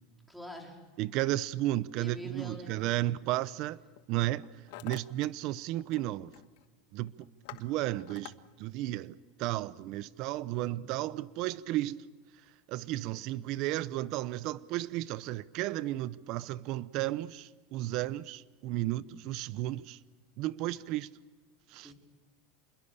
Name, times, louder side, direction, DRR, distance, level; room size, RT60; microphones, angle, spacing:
voice 1, 0.3-0.8 1.9-3.2 21.8-21.9, equal, ahead, 4.2 m, -45 dB
voice 2, 1.0-3.8 4.1-4.4 4.8-6.3 6.9-7.3 7.6-12.1 12.7-20.0 20.4-21.1 21.7-21.9, right 15 dB, 50° right, 0.8 m, -33 dB
Hammer, 2.7-3.0 3.7-4.0 4.3-5.3 5.5-6.1 6.3-6.7 7.1-8.4, left 17 dB, 70° left, 1.3 m, -48 dB
27.5 x 21.5 x 6.8 m
supercardioid pair, 145°, 0 cm